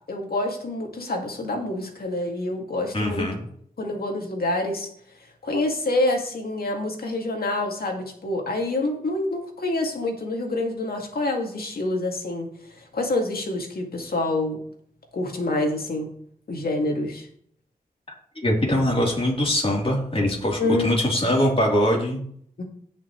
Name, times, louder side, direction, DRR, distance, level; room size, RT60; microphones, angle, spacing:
voice 1, 0.1-3.3 3.8-4.9 5.4-12.5 12.8-14.6 15.1-16.1 16.5-17.3 20.6-21.0 22.6-22.7, left 2 dB, 80° left, 2 dB, 2.4 m, -27 dB
voice 2, 2.9-3.4 18.4-22.2, equal, 40° left, -3 dB, 3.6 m, -22 dB
17.5 x 6.0 x 3.2 m, 0.63 s
wide cardioid pair, 70°, 15 cm